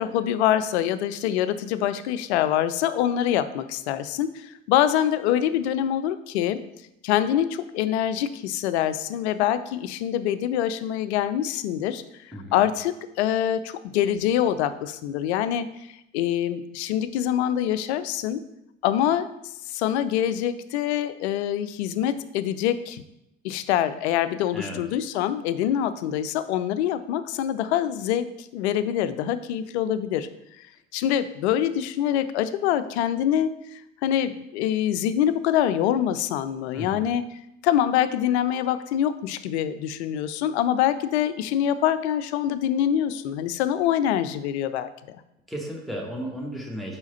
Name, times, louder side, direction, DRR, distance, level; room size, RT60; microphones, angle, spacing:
voice 1, 0.0-6.6 7.0-18.4 18.8-19.3 19.7-23.0 23.4-30.3 30.5-30.6 30.9-37.2 37.6-45.2, left 10 dB, 60° left, 12 dB, 0.5 m, -25 dB
voice 2, 12.3-12.6 24.5-24.8 36.7-37.1 45.5-47.0, equal, ahead, -1 dB, 1.3 m, -34 dB
5.1 x 4.8 x 4.0 m, 0.85 s
figure-of-eight pair, 65°, 37 cm